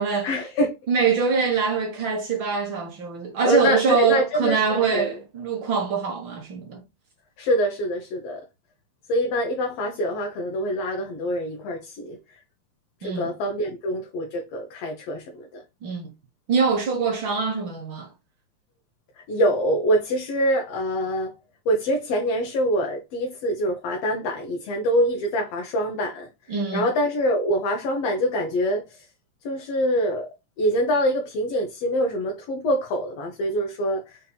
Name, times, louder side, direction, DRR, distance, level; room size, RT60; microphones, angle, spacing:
voice 1, 0.2-0.7 3.4-5.1 7.4-8.4 9.1-12.2 13.0-15.6 19.3-21.4 21.6-29.1 29.4-30.3 30.6-34.2, equal, 65° left, 1.8 m, -25 dB
voice 2, 0.9-6.8 13.0-13.3 15.8-16.1 16.5-18.1 26.5-26.9, right 5 dB, 60° right, 1.3 m, -24 dB
5.6 x 3.9 x 2.2 m
omnidirectional pair, 3.3 m